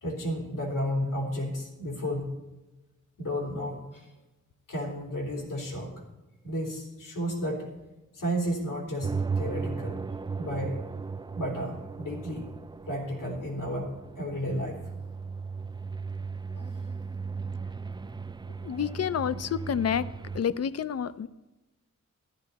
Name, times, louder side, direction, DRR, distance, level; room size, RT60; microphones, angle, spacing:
voice 1, 0.0-2.3 3.2-4.1 4.7-5.9 6.4-7.7 8.1-10.0 10.4-10.8 11.3-12.5 12.9-14.8 16.6-16.7 18.7-18.9, equal, 90° left, 0 dB, 3.8 m, -32 dB
sound 1, 9.0-20.4, right 5 dB, 15° right, 0.3 m, -36 dB
voice 2, 18.6-20.1 20.3-21.3, left 8 dB, 55° left, 16 dB, 0.5 m, -29 dB
14.0 x 12.5 x 4.2 m, 1.1 s
wide cardioid pair, 110°, 31 cm